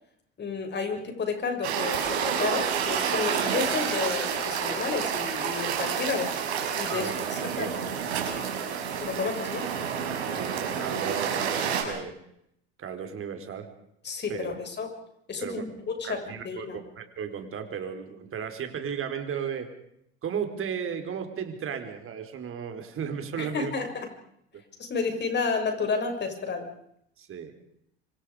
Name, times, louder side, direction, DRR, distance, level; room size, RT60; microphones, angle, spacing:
voice 1, 0.4-6.3 6.7-7.7 9.0-9.7 14.0-14.9 15.3-16.8 23.4-24.1 24.8-26.7, left 5 dB, 30° left, 4 dB, 6.9 m, -31 dB
sound 1, 1.6-11.8, right 7 dB, 80° right, 5.9 m, -29 dB
voice 2, 6.9-7.3 7.5-7.8 10.3-12.2 12.8-13.7 14.3-14.5 15.4-15.6 16.0-19.7 20.2-23.7 27.2-27.5, right 7 dB, 40° right, 6 dB, 4.6 m, -34 dB
26.5 x 26.0 x 5.1 m, 0.74 s
hypercardioid pair, 75°, 33 cm